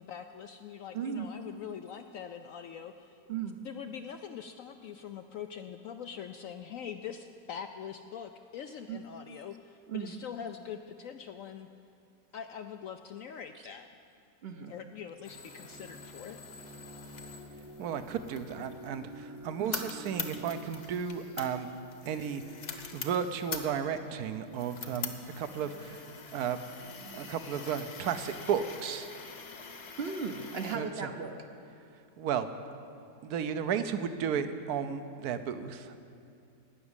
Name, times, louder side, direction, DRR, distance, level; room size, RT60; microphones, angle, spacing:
voice 1, 0.0-3.2 3.6-11.7 12.3-13.9 14.7-16.7 18.6-18.7, left 8 dB, 75° left, 7 dB, 0.7 m, -43 dB
voice 2, 0.9-1.3 3.3-3.6 8.9-9.0 9.9-10.1 13.5-13.6 14.4-14.7 19.6-19.7 30.0-31.4, right 6 dB, 50° right, 6 dB, 0.7 m, -36 dB
sound 1, 15.2-30.8, left 5 dB, 50° left, 1.2 m, -44 dB
sound 2, 15.3-20.6, equal, 20° right, 0.5 m, -49 dB
voice 3, 17.8-21.7 22.1-22.4 22.9-26.0 26.3-26.6 27.1-29.1 30.7-30.9 32.2-32.5 33.2-35.9, right 7 dB, 65° right, 10 dB, 1.1 m, -33 dB
17.0 x 6.1 x 9.7 m, 2.5 s
omnidirectional pair, 1.8 m